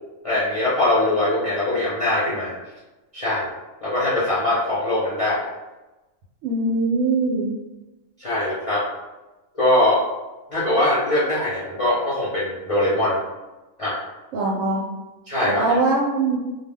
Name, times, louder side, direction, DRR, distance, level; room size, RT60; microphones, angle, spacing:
voice 1, 0.2-2.6 3.1-3.5 3.8-5.5 8.2-8.9 9.6-10.0 10.5-13.2 13.8-14.0 15.3-15.8, left 1 dB, 40° left, -9 dB, 0.5 m, -22 dB
voice 2, 6.4-7.5 14.3-14.8 15.6-16.4, right 3 dB, 75° right, -4 dB, 0.9 m, -21 dB
2.3 x 2.1 x 3.4 m, 1.1 s
omnidirectional pair, 1.5 m